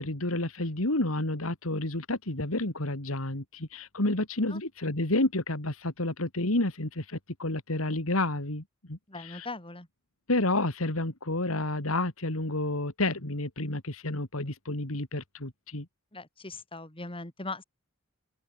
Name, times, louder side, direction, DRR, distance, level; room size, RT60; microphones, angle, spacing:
voice 1, 0.0-9.5 10.3-15.9, left 2 dB, 75° left, 3.1 m, -30 dB
voice 2, 9.1-9.9 16.1-17.6, left 2 dB, 25° left, 5.1 m, -40 dB
open air
head